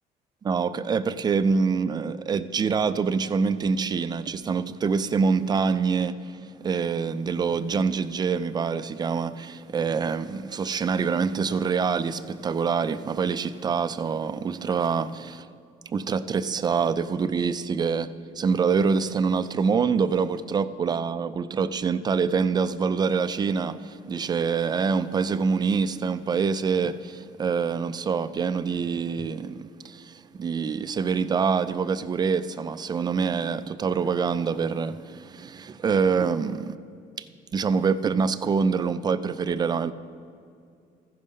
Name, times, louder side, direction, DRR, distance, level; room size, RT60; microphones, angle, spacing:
voice 1, 0.4-15.5 15.9-36.7 37.2-37.3 37.5-39.9, right 5 dB, 25° right, 0.4 m, -25 dB
sound 1, 34.0-34.6, equal, 80° left, 2.5 m, -48 dB
14.5 x 5.4 x 5.3 m
cardioid pair, 110°, 17 cm